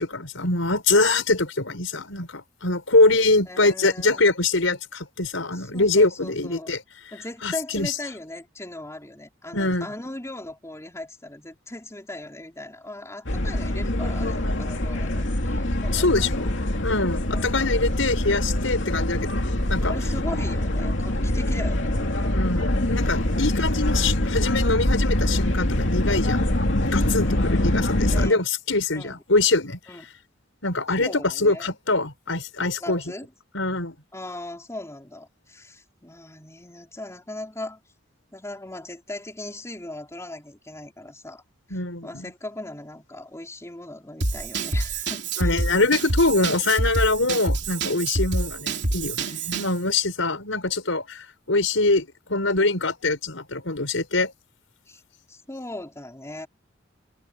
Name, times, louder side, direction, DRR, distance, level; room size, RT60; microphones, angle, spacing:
voice 1, 0.0-6.8 7.4-7.9 9.5-9.9 15.9-16.5 16.8-20.0 22.3-26.4 26.9-29.8 30.6-33.0 33.5-33.9 41.7-42.3 45.4-54.3, left 3 dB, 85° left, 5.4 m, -24 dB
voice 2, 3.5-4.3 5.5-6.8 7.1-16.1 16.3-16.5 17.3-17.4 19.8-22.3 23.3-23.4 27.2-27.7 28.1-28.4 28.9-29.2 29.9-30.1 31.0-31.7 32.8-33.3 34.1-37.8 38.3-41.4 41.7-45.6 54.9-55.0 55.3-56.5, left 1 dB, 15° left, 4.4 m, -38 dB
sound 1, 13.3-28.3, left 1 dB, 65° left, 2.7 m, -24 dB
Drum kit / Drum, 44.2-49.8, right 2 dB, 60° right, 3.4 m, -27 dB
head